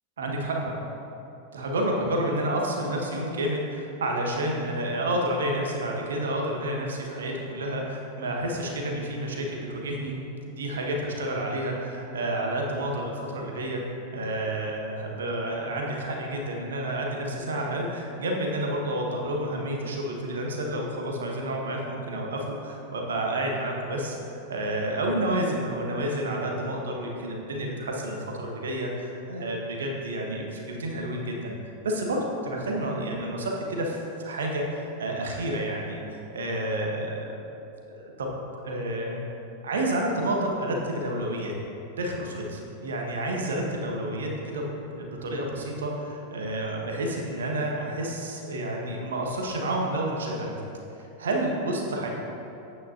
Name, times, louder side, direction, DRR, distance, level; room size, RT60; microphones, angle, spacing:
voice 1, 0.2-0.7 1.5-10.1 10.6-31.5 31.8-36.0 36.3-37.3 37.9-38.3 38.6-39.2 39.6-41.5 42.0-44.6 44.9-50.6 51.0-52.1, right 1 dB, 65° right, 0 dB, 1.2 m, -30 dB
8.9 x 8.7 x 2.8 m, 2.9 s
figure-of-eight pair, 90°, 0 cm